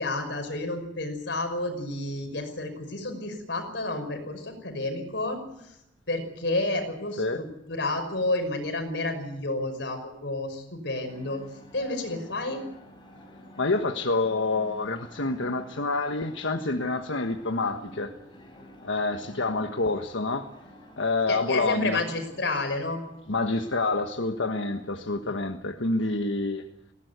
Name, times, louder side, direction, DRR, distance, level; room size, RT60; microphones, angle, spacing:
voice 1, 0.0-5.4 6.1-11.4 11.7-12.6 21.3-23.0, left 2 dB, 65° left, 6 dB, 5.7 m, -30 dB
sound 1, 11.1-24.9, equal, 25° left, 6.9 m, -50 dB
voice 2, 13.6-18.1 18.8-20.5 21.0-22.0 23.3-26.6, left 3 dB, 85° left, 5 dB, 1.4 m, -27 dB
20.5 x 17.5 x 9.4 m, 0.84 s
head